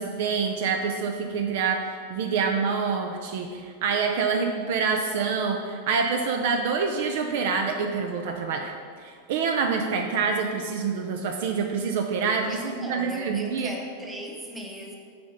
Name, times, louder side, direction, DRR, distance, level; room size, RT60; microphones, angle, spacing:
voice 1, 0.0-8.7 9.0-13.7, right 5 dB, 55° right, 4 dB, 0.5 m, -26 dB
voice 2, 12.4-15.0, equal, 10° right, 1 dB, 0.9 m, -38 dB
6.8 x 3.7 x 5.4 m, 2.1 s
figure-of-eight pair, 90°, 0 cm